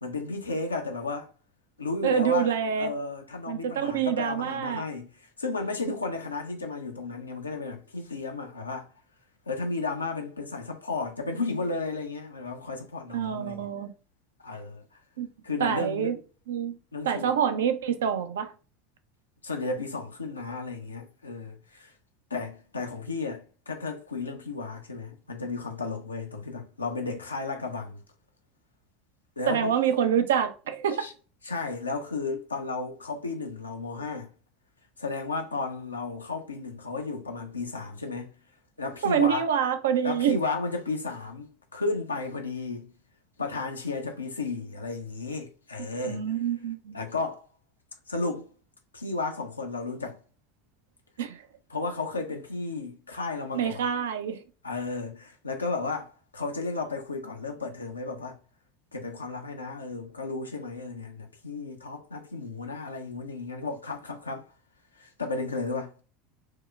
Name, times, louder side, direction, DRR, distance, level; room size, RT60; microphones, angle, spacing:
voice 1, 0.0-1.3 1.8-8.9 9.5-13.7 14.4-14.8 15.4-16.2 16.9-17.3 19.4-21.9 22.3-28.0 29.4-29.7 31.0-31.1 31.4-34.3 35.0-38.3 38.8-39.4 40.0-42.9 43.4-46.2 46.9-47.5 48.1-48.5 48.9-50.2 51.7-53.8 54.6-58.4 58.9-64.5 65.0-65.9, left 3 dB, 85° left, 0.6 m, -33 dB
voice 2, 2.0-2.9 3.5-4.8 13.1-13.9 15.2-15.3 15.6-16.1 16.5-16.8 17.0-18.5 29.5-31.1 39.0-40.4 46.1-47.0 51.2-51.4 53.5-54.4, right 8 dB, 70° right, 0.5 m, -26 dB
4.6 x 2.1 x 2.2 m
figure-of-eight pair, 75°, 0 cm